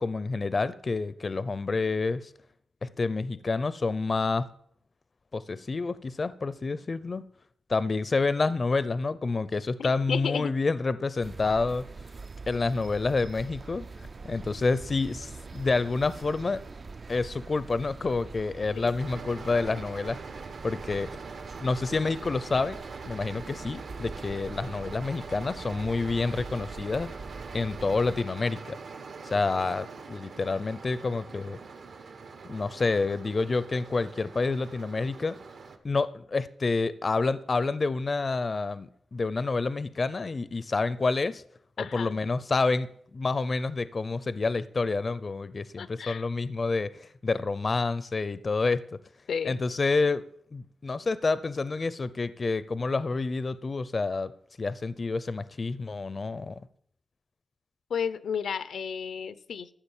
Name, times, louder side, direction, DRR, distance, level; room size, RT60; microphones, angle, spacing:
voice 1, 0.0-2.3 2.8-4.5 5.3-7.3 7.7-11.9 12.5-16.6 17.1-20.2 20.6-21.2 21.6-27.1 27.5-28.8 29.2-31.6 32.4-35.4 35.8-41.4 41.8-49.0 49.4-50.2 50.5-54.3 54.6-56.6, left 3 dB, 35° left, 0.5 m, -28 dB
voice 2, 9.8-10.5 18.7-19.0 41.8-42.2 45.8-46.2 49.3-49.6 57.9-59.7, left 7 dB, 85° left, 0.7 m, -33 dB
sound 1, 11.2-28.2, right 4 dB, 40° right, 0.4 m, -44 dB
sound 2, 19.0-35.8, right 4 dB, 65° right, 1.3 m, -43 dB
13.5 x 7.2 x 7.2 m
wide cardioid pair, 125°, 0 cm